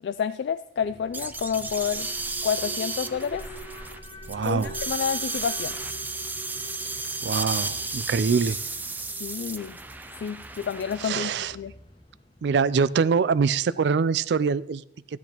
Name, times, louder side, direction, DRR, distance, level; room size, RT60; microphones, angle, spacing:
voice 1, 0.0-2.1 2.4-3.5 4.4-5.8 9.2-9.8 10.2-11.7, left 7 dB, 70° left, 12 dB, 0.3 m, -29 dB
Alarm, 0.8-12.8, equal, 30° left, 1.0 m, -45 dB
sound 1, 1.1-11.1, right 3 dB, 10° right, 0.5 m, -33 dB
voice 2, 4.3-4.7 7.2-8.6 11.0-11.5 12.4-14.8, right 5 dB, 75° right, 17 dB, 0.4 m, -24 dB
13.0 x 10.5 x 3.0 m, 0.76 s
head